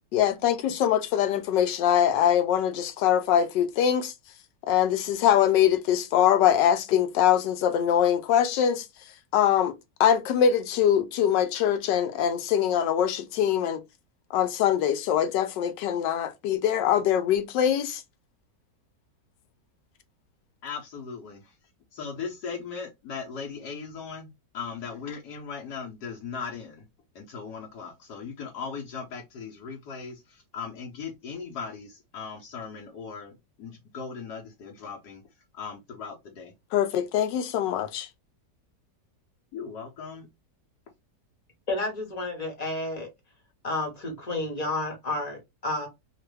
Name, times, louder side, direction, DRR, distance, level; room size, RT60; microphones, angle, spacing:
voice 1, 0.1-4.1 4.7-8.9 9.3-9.7 10.0-13.8 14.3-18.0 36.7-38.1, left 9 dB, 90° left, 1.3 m, -23 dB
voice 2, 20.6-21.4 21.9-24.3 24.5-26.8 27.1-33.3 33.6-35.2 35.5-36.5 39.5-40.3, left 5 dB, 70° left, 1.3 m, -38 dB
voice 3, 41.7-43.1 43.6-45.9, left 2 dB, 30° left, 0.9 m, -31 dB
3.0 x 2.4 x 3.1 m
omnidirectional pair, 1.9 m